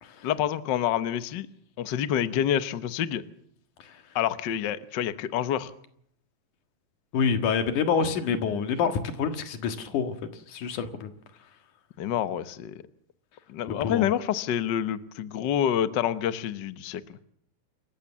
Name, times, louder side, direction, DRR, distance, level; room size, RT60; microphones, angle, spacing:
voice 1, 0.2-1.5 1.8-3.2 4.1-5.7 12.0-12.8 13.5-17.2, left 10 dB, 65° left, 13 dB, 1.1 m, -27 dB
voice 2, 7.1-10.1 10.5-11.1 13.8-14.1, left 6 dB, 90° left, 8 dB, 3.2 m, -27 dB
27.5 x 15.0 x 7.3 m, 0.68 s
omnidirectional pair, 3.4 m